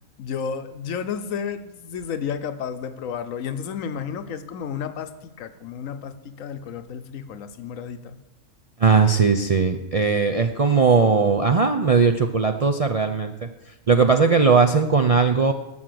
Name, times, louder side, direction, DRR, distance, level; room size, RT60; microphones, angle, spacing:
voice 1, 0.2-8.2, left 7 dB, 85° left, 11 dB, 1.1 m, -32 dB
voice 2, 8.8-13.3 13.9-15.5, right 5 dB, 50° right, 5 dB, 0.4 m, -18 dB
11.5 x 6.1 x 7.7 m, 0.97 s
omnidirectional pair, 1.4 m